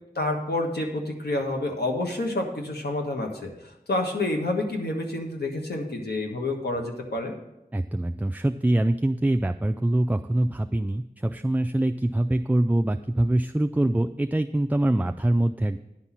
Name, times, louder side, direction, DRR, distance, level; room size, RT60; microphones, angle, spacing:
voice 1, 0.1-7.3, left 2 dB, 85° left, 2 dB, 1.4 m, -28 dB
voice 2, 7.7-15.8, right 1 dB, 10° right, 7 dB, 0.3 m, -24 dB
10.5 x 4.2 x 7.3 m, 0.90 s
wide cardioid pair, 40°, 16 cm